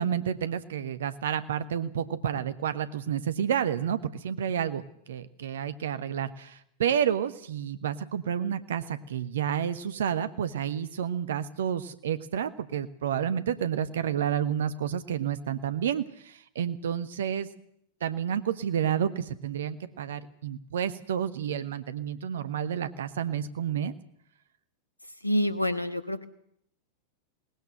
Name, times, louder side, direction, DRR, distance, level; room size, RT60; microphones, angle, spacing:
voice 1, 0.0-17.5 18.0-23.9, right 9 dB, 60° right, 13 dB, 1.2 m, -30 dB
voice 2, 25.2-26.2, equal, 85° left, 12 dB, 1.5 m, -27 dB
20.5 x 19.0 x 7.8 m, 0.72 s
figure-of-eight pair, 90°, 0 cm